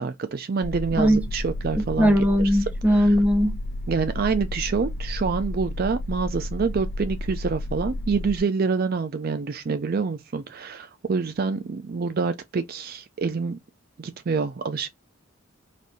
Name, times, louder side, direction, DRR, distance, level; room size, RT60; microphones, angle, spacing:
voice 1, 0.0-2.5 2.9-3.1 3.9-13.6 14.0-14.9, right 5 dB, 45° right, 0.4 m, -27 dB
sound 1, 0.6-8.4, left 1 dB, 50° left, 0.6 m, -32 dB
voice 2, 1.8-3.5, equal, 5° right, 0.8 m, -19 dB
4.1 x 2.6 x 4.8 m
head